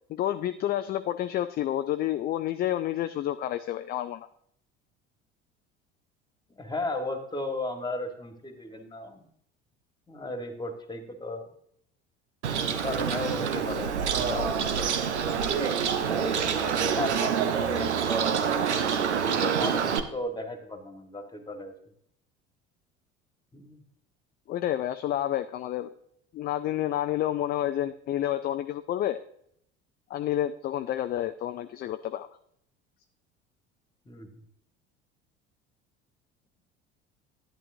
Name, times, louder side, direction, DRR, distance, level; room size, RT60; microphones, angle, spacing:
voice 1, 0.1-4.3 24.5-25.9 26.3-29.2 30.1-32.3, left 12 dB, 30° left, 9 dB, 0.4 m, -29 dB
voice 2, 6.6-9.2 10.1-11.4 12.8-14.6 15.8-18.5 19.3-21.7 23.5-23.8 34.1-34.3, left 1 dB, 10° left, 5 dB, 1.6 m, -35 dB
Bird, 12.4-20.0, right 7 dB, 80° right, 0.7 m, -27 dB
11.0 x 9.7 x 2.7 m, 0.70 s
figure-of-eight pair, 60°, 34 cm